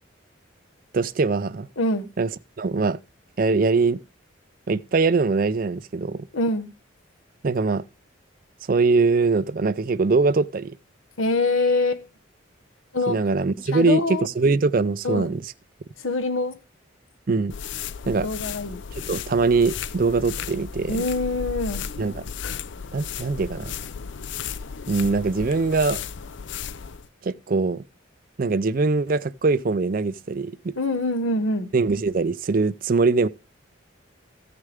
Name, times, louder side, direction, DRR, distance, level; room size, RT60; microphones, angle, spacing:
voice 1, 0.9-1.7 2.2-2.3 2.6-3.0 3.4-4.0 4.7-6.3 7.4-7.8 8.7-10.8 13.1-15.5 17.3-17.5 18.0-18.3 19.1-21.1 22.0-22.2 22.9-23.7 24.9-26.0 27.2-27.8 28.4-30.7 31.7-33.3, right 4 dB, 45° right, 0.4 m, -22 dB
voice 2, 1.8-2.1 6.3-6.7 11.2-12.0 12.9-13.2 13.7-14.3 15.0-15.3 16.0-16.6 18.2-18.8 20.9-21.8 30.8-31.7, left 2 dB, 85° left, 1.3 m, -24 dB
sound 1, 17.5-27.1, left 7 dB, 65° left, 0.5 m, -34 dB
14.5 x 6.6 x 3.5 m
head